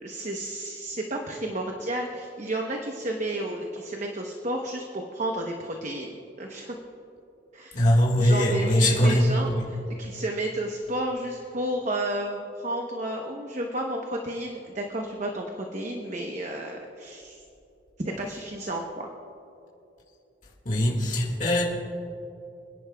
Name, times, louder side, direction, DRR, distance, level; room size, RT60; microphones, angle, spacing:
voice 1, 0.0-6.7 7.5-7.8 8.2-17.4 18.0-19.1, right 1 dB, 40° right, 1 dB, 0.9 m, -32 dB
voice 2, 7.7-9.6 20.6-21.6, equal, 45° left, -3 dB, 1.8 m, -21 dB
26.5 x 10.5 x 2.3 m, 2.8 s
head